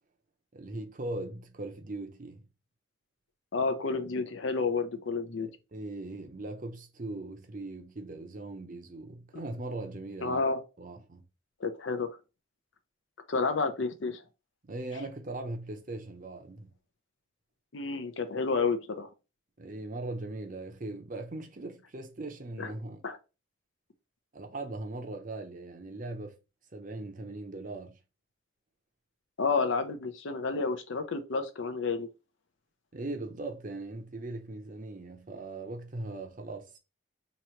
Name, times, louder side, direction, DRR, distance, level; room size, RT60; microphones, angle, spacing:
voice 1, 0.5-2.4 5.4-10.4 10.8-11.2 14.6-16.7 19.6-23.0 24.3-26.4 26.7-28.0 32.9-36.7, right 2 dB, 40° right, 0.6 m, -39 dB
voice 2, 3.5-5.5 10.2-10.6 11.6-12.2 13.3-14.2 17.7-19.1 22.6-22.7 23.0-23.2 29.4-32.1, left 4 dB, 70° left, 0.6 m, -30 dB
3.0 x 2.8 x 4.3 m
head